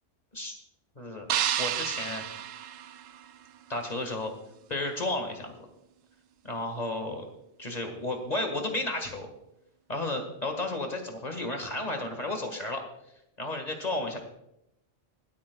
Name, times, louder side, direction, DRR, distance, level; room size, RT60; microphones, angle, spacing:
voice 1, 1.0-1.3 1.6-2.2 3.7-4.3 4.7-5.7 6.4-7.2 7.6-9.3 9.9-12.8 13.4-14.2, left 2 dB, 30° left, 4 dB, 1.8 m, -32 dB
sound 1, 1.3-3.6, right 10 dB, 80° right, 1.0 m, -31 dB
26.0 x 8.7 x 2.3 m, 0.82 s
omnidirectional pair, 1.3 m